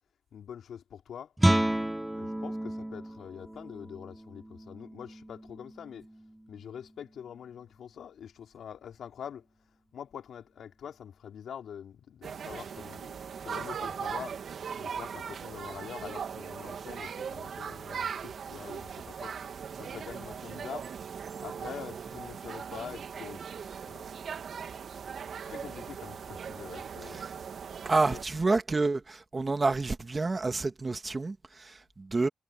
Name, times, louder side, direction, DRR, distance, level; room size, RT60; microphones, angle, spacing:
voice 1, 0.3-1.3 2.1-6.1 6.5-9.5 9.9-14.4 14.8-19.3 19.8-20.9 21.4-23.5 23.8-24.1 25.4-27.2 28.1-28.3, left 8 dB, 60° left, 3.5 m, -45 dB
Guitar, 1.4-6.9, right 1 dB, 5° right, 0.5 m, -32 dB
sound 1, 12.2-28.2, right 7 dB, 50° right, 2.8 m, -39 dB
voice 2, 27.9-32.3, right 3 dB, 25° right, 2.1 m, -29 dB
cardioid pair, 90°, 0 cm